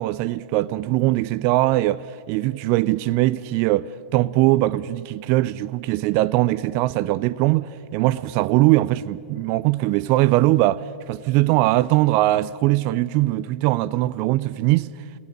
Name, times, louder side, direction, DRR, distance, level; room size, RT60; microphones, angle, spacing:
voice 1, 0.0-14.9, right 17 dB, 45° right, 0.5 m, -21 dB
29.5 x 17.0 x 6.7 m
figure-of-eight pair, 100°, 5 cm